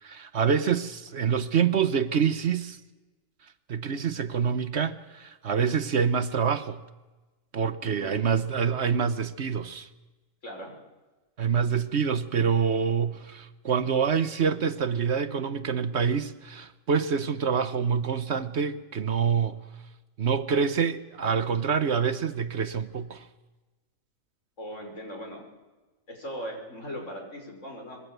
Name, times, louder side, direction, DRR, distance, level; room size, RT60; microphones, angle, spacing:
voice 1, 0.0-2.8 3.7-6.8 7.5-9.9 11.4-19.6 20.2-23.3, right 6 dB, 60° right, 1.2 m, -26 dB
voice 2, 7.8-8.3 10.4-10.7 24.6-25.4 26.1-28.0, equal, 65° left, 6.2 m, -39 dB
25.5 x 21.0 x 8.1 m
omnidirectional pair, 1.4 m